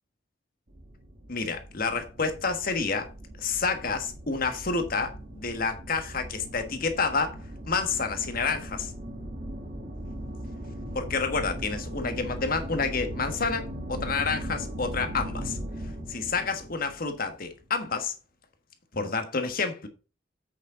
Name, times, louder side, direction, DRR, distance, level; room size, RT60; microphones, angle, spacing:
sound 1, 0.7-17.7, equal, 45° right, 1.7 m, -39 dB
voice 1, 1.3-3.1 3.4-7.4 7.7-8.9 10.9-15.6 16.1-18.1 18.9-19.9, left 4 dB, 50° left, 1.5 m, -29 dB
8.3 x 6.2 x 3.8 m
head